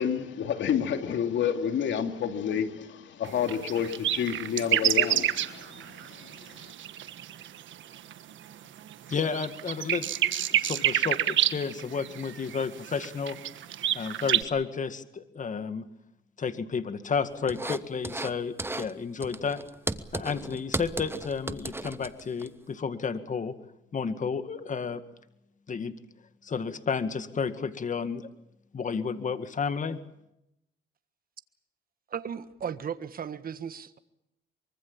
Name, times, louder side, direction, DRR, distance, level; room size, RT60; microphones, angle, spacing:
voice 1, 0.0-6.7, left 8 dB, 70° left, 2.8 m, -30 dB
sound 1, 3.2-8.3 8.8-14.4, right 11 dB, 75° right, 1.5 m, -28 dB
voice 2, 9.1-13.4 13.9-15.8 16.4-19.6 20.1-23.5 23.9-25.0 25.7-25.9 26.4-28.3 28.7-30.0, left 5 dB, 40° left, 1.9 m, -32 dB
sound 2, 17.5-18.3 18.6-18.9 19.2-22.5, right 2 dB, 10° right, 1.1 m, -35 dB
voice 3, 32.1-34.0, right 7 dB, 45° right, 1.5 m, -36 dB
24.5 x 24.0 x 7.3 m
cardioid pair, 90°, 20 cm